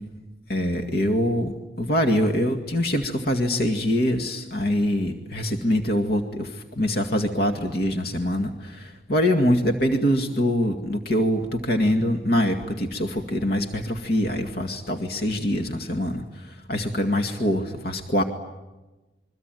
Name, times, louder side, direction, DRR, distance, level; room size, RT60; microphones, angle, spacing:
voice 1, 0.5-18.2, left 1 dB, 60° left, 5 dB, 2.2 m, -24 dB
27.5 x 23.5 x 9.3 m, 1.1 s
head